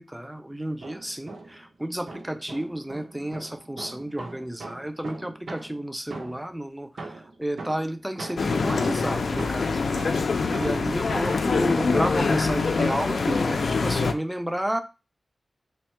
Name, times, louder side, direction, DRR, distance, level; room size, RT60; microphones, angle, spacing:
voice 1, 0.0-14.8, right 1 dB, 10° right, 0.4 m, -31 dB
sound 1, 0.6-1.7 2.1-6.6 7.0-11.5, right 3 dB, 90° right, 0.6 m, -41 dB
sound 2, 8.4-14.1, left 4 dB, 85° left, 0.4 m, -24 dB
3.4 x 2.1 x 4.4 m
wide cardioid pair, 120°, 0 cm